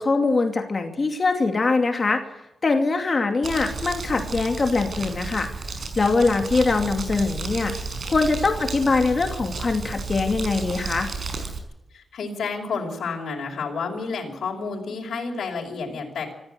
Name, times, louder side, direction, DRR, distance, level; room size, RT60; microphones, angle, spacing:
voice 1, 0.0-2.2 2.6-5.5 6.0-7.7 8.0-11.1, left 3 dB, 35° left, 4 dB, 2.6 m, -22 dB
Crumpling crinkling, 3.4-11.6, right 3 dB, 45° right, 5.3 m, -32 dB
voice 2, 11.9-16.4, left 4 dB, 70° left, -1 dB, 5.4 m, -30 dB
26.5 x 15.0 x 7.9 m, 0.91 s
wide cardioid pair, 145°, 0 cm